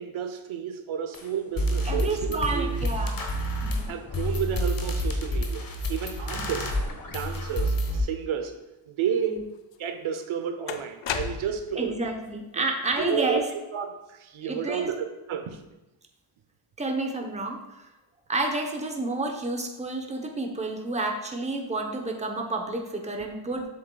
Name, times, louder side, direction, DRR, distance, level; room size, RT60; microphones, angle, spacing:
voice 1, 0.0-2.7 3.9-6.7 7.0-8.5 8.9-9.5 9.8-12.0 12.6-12.7 13.0-15.6 23.2-23.3, right 8 dB, 80° right, 6 dB, 0.8 m, -31 dB
sound 1, 1.1-1.2 1.6-8.0, equal, 45° left, 1.1 m, -29 dB
voice 2, 1.8-3.2 3.6-3.9 6.4-6.5 9.2-9.4 11.7-13.4 14.4-14.9 16.8-17.6 18.3-23.7, right 2 dB, 15° right, 3 dB, 0.8 m, -30 dB
sound 2, 9.7-9.8 10.7-11.8, left 8 dB, 65° left, 0.6 m, -32 dB
7.4 x 7.1 x 2.3 m, 0.98 s
wide cardioid pair, 100°, 48 cm